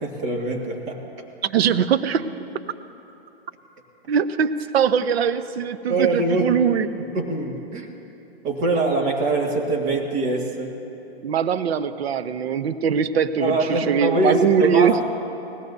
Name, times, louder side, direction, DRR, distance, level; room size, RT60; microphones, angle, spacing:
voice 1, 0.0-1.0 5.9-6.5 7.1-7.9 8.4-10.7 13.4-15.0, right 2 dB, 35° right, 0 dB, 1.9 m, -23 dB
voice 2, 1.4-2.3 4.1-6.9 11.2-15.0, right 8 dB, 75° right, 12 dB, 0.8 m, -21 dB
19.5 x 17.0 x 2.7 m, 2.8 s
hypercardioid pair, 135°, 31 cm